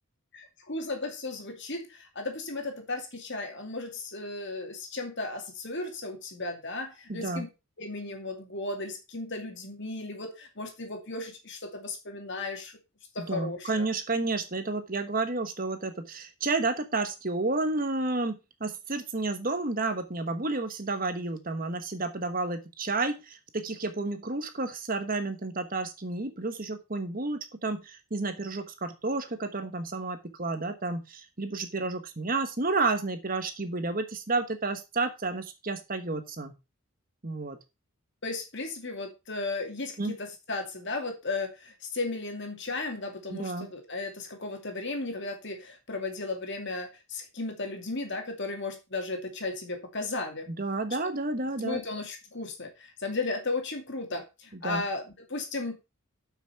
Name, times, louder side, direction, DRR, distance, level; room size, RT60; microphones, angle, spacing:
voice 1, 0.3-7.5 7.8-12.7 13.1-13.9 38.2-50.5 51.6-55.8, left 3 dB, 55° left, 4 dB, 2.4 m, -35 dB
voice 2, 7.1-7.4 13.2-36.5 37.2-37.6 40.0-40.2 43.3-43.7 50.5-51.8 54.6-54.8, right 3 dB, 40° right, 8 dB, 1.2 m, -31 dB
8.0 x 6.0 x 5.6 m, 0.26 s
head